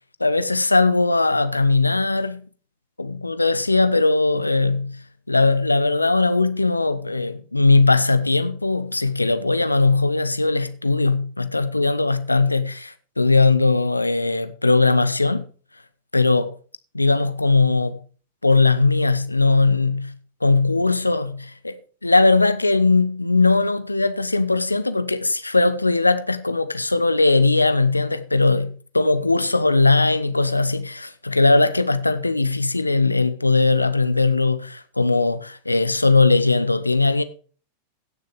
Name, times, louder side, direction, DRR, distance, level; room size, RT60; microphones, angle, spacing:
voice 1, 0.2-2.5 3.0-15.5 16.1-16.6 16.9-18.0 18.4-20.2 20.4-21.3 21.6-21.7 22.0-37.2, left 3 dB, 85° left, 0.8 m, -19 dB
16.5 x 6.6 x 4.8 m
figure-of-eight pair, 90°, 0 cm